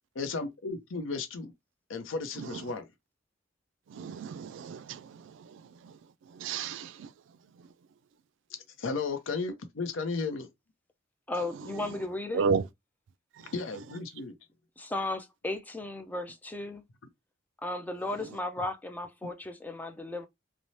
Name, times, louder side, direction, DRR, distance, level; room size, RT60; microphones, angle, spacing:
voice 1, 0.2-1.5 1.9-2.8 8.8-10.4 13.5-14.3, left 4 dB, 85° left, 0.6 m, -34 dB
voice 2, 2.3-2.8 3.9-7.7 11.5-12.1 12.3-12.7 13.3-14.0 18.1-18.4, right 5 dB, 70° right, 0.3 m, -35 dB
voice 3, 11.3-12.4 14.8-16.8 17.6-20.3, left 2 dB, 10° left, 0.3 m, -35 dB
3.1 x 2.0 x 2.7 m
head